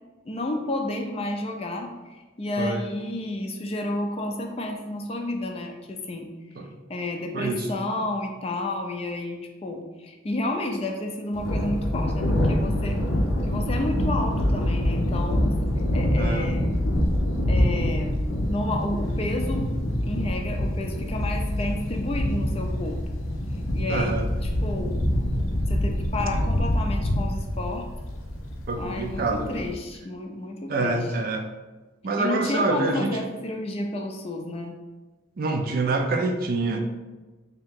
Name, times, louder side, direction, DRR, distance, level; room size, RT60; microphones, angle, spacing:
voice 1, 0.3-6.3 6.9-13.0 13.4-16.7 17.5-18.1 18.5-19.7 20.0-23.0 23.7-25.0 25.7-27.9 28.8-31.0 32.2-34.8, left 1 dB, 30° left, 3 dB, 0.4 m, -31 dB
voice 2, 7.3-7.7 16.1-16.5 23.9-24.3 28.7-29.7 30.7-31.5 32.0-33.2 35.4-36.8, right 3 dB, 45° right, 4 dB, 0.4 m, -26 dB
Thunder, 11.3-29.8, left 1 dB, 90° left, 0.6 m, -25 dB
3.5 x 2.8 x 3.5 m, 1.2 s
head